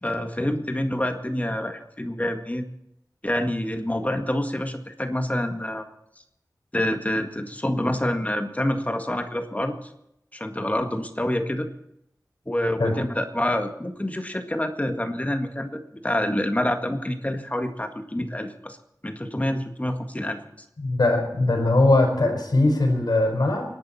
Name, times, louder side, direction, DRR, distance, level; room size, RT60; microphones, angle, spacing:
voice 1, 0.0-2.7 3.2-5.9 6.7-9.8 10.3-11.7 12.5-18.8 19.0-20.4, left 1 dB, 20° left, 6 dB, 1.8 m, -27 dB
voice 2, 20.8-23.6, left 2 dB, 80° left, 2 dB, 5.0 m, -20 dB
28.5 x 11.5 x 4.4 m, 0.79 s
wide cardioid pair, 65°, 7 cm